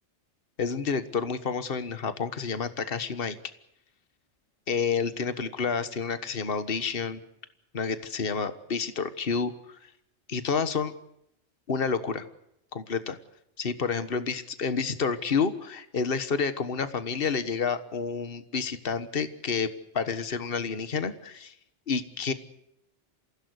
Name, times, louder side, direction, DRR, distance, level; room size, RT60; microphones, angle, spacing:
voice 1, 0.6-3.3 4.7-7.2 7.7-9.5 10.3-10.9 11.7-12.2 12.7-13.2 13.6-19.7 19.9-21.5 21.9-22.3, left 5 dB, 50° left, 12 dB, 1.6 m, -29 dB
27.0 x 16.5 x 8.2 m, 0.78 s
omnidirectional pair, 1.2 m